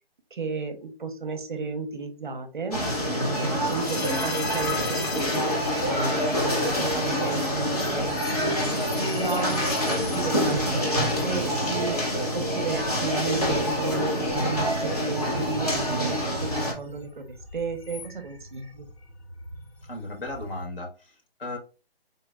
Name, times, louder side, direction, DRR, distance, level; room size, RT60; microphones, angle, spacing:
voice 1, 0.3-2.9 3.4-9.7 10.1-12.0 12.3-17.2 17.5-18.9, right 4 dB, 50° right, 7 dB, 0.5 m, -33 dB
sound 1, 2.7-16.7, equal, 40° left, 0.8 m, -26 dB
sound 2, 3.6-20.7, left 3 dB, 85° left, 0.9 m, -40 dB
voice 2, 3.9-4.2 19.9-21.6, left 2 dB, 60° left, 0 dB, 1.4 m, -36 dB
3.8 x 2.0 x 2.3 m, 0.31 s
hypercardioid pair, 180°, 31 cm